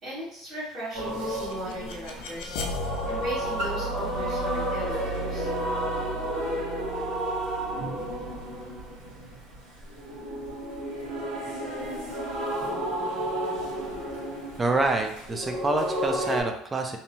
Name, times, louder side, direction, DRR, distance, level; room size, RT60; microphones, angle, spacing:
voice 1, 0.0-2.6 3.1-5.5, right 1 dB, 40° right, -10 dB, 1.2 m, -37 dB
sound 1, 0.9-16.4, equal, 75° right, 1.3 m, -32 dB
sound 2, 1.3-10.0, right 1 dB, 80° left, 0.4 m, -37 dB
voice 2, 14.6-17.0, right 2 dB, 20° right, 4 dB, 0.4 m, -27 dB
2.7 x 2.0 x 2.9 m, 0.70 s
supercardioid pair, 110°, 0 cm